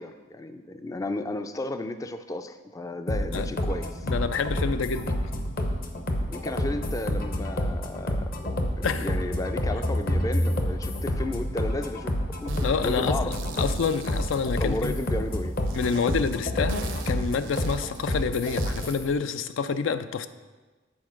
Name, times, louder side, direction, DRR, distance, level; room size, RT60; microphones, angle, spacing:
voice 1, 0.0-4.1 6.3-12.1 12.4-13.6 14.6-15.6, left 2 dB, 20° left, 9 dB, 0.3 m, -33 dB
sound 1, 3.1-19.1, equal, 50° left, 0.8 m, -28 dB
voice 2, 4.0-5.2 8.8-9.1 12.6-14.9 15.7-20.3, left 5 dB, 85° left, 11 dB, 0.4 m, -28 dB
sound 2, 12.5-12.7 13.0-15.1 15.6-19.0, right 5 dB, 80° right, 0.7 m, -43 dB
8.6 x 4.5 x 6.0 m, 1.3 s
head